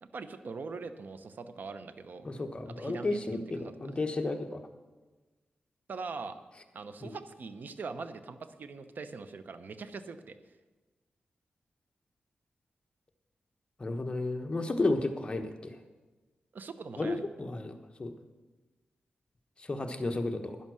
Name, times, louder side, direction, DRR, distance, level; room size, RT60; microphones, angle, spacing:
voice 1, 0.0-2.3 2.7-3.9 5.9-6.4 6.7-10.4 16.5-17.2, right 4 dB, 65° right, 11 dB, 0.9 m, -42 dB
voice 2, 2.2-4.6 7.0-7.1 13.8-15.8 17.0-18.1 19.7-20.6, left 2 dB, 30° left, 5 dB, 1.2 m, -32 dB
11.0 x 10.5 x 6.4 m, 1.2 s
cardioid pair, 80°, 3 cm